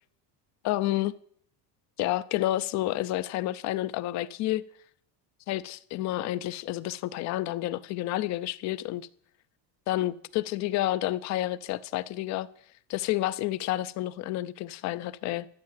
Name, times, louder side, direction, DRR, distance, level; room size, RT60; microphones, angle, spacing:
voice 1, 0.6-1.1 2.0-4.6 5.5-9.1 9.9-12.5 12.9-15.5, left 15 dB, 40° left, 0.5 m, -30 dB
12.5 x 8.3 x 7.4 m
cardioid pair, 155°, 46 cm